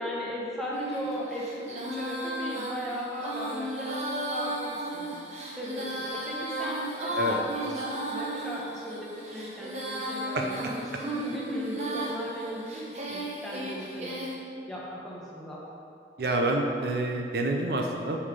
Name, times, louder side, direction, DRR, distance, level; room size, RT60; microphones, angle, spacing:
voice 1, 0.0-5.0 5.6-14.2 14.7-15.6, equal, ahead, -6 dB, 1.1 m, -37 dB
Female singing, 0.7-14.3, right 1 dB, 40° right, 0.9 m, -34 dB
voice 2, 10.3-10.7 16.2-18.2, right 1 dB, 60° right, 2 dB, 0.6 m, -28 dB
6.4 x 5.6 x 4.8 m, 2.6 s
head